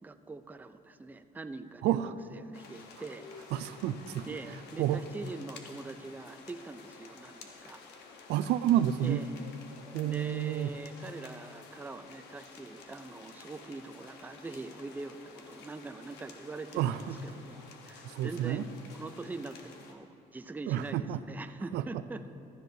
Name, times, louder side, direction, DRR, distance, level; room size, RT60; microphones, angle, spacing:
voice 1, 0.0-3.2 4.3-7.8 9.0-9.3 10.0-22.3, right 3 dB, 10° right, 9 dB, 0.4 m, -43 dB
voice 2, 1.8-2.1 3.5-4.3 4.8-5.0 8.3-9.2 9.9-10.7 16.8-17.2 18.0-18.7 20.7-21.2 21.7-21.8, right 12 dB, 85° right, 12 dB, 0.4 m, -29 dB
sound 1, 2.5-19.9, left 4 dB, 85° left, 1.0 m, -51 dB
15.0 x 12.5 x 2.7 m, 2.6 s
cardioid pair, 110°, 17 cm